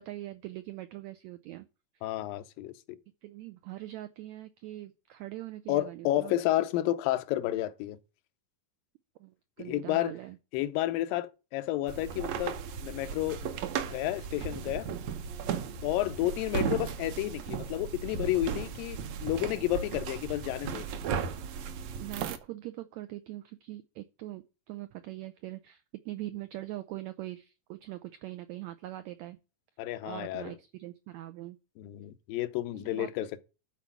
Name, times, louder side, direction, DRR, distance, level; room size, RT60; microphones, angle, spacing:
voice 1, 0.0-1.7 3.2-6.3 9.2-10.4 15.7-15.8 22.0-29.4 30.0-31.6 32.7-33.3, right 16 dB, 85° right, 1.6 m, -42 dB
voice 2, 2.0-3.0 5.7-8.0 9.6-10.2 10.5-13.5 13.9-14.9 15.8-20.9 29.8-30.5 31.8-33.4, left 15 dB, 90° left, 2.5 m, -31 dB
sound 1, 11.9-22.4, right 7 dB, 70° right, 1.8 m, -36 dB
12.0 x 4.5 x 7.1 m
omnidirectional pair, 3.9 m